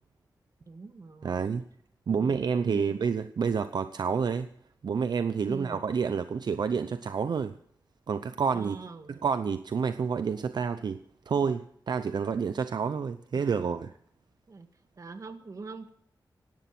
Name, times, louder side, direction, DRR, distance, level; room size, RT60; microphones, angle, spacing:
voice 1, 0.7-1.5 2.1-3.2 5.4-5.8 8.5-9.1 13.4-13.6 14.5-14.7 15.0-15.9, right 4 dB, 45° right, 8 dB, 1.8 m, -43 dB
voice 2, 1.2-1.6 2.1-4.5 4.8-7.5 8.1-8.8 9.1-11.0 11.3-13.9, right 6 dB, 70° right, 11 dB, 0.7 m, -29 dB
17.0 x 12.0 x 5.9 m, 0.65 s
wide cardioid pair, 130°, 8 cm